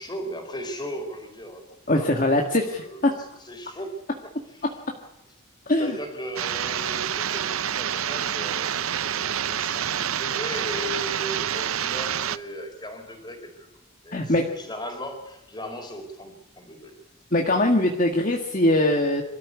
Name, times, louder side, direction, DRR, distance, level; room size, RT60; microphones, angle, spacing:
voice 1, 0.0-4.0 4.5-4.7 5.8-13.7 14.0-16.9, equal, 20° left, 5 dB, 4.4 m, -37 dB
voice 2, 1.9-3.1 5.7-6.0 14.1-14.4 17.3-19.2, left 1 dB, 40° left, 2 dB, 1.9 m, -22 dB
sound 1, 6.4-12.4, right 9 dB, 85° right, 0.7 m, -27 dB
25.5 x 14.0 x 8.3 m, 0.85 s
head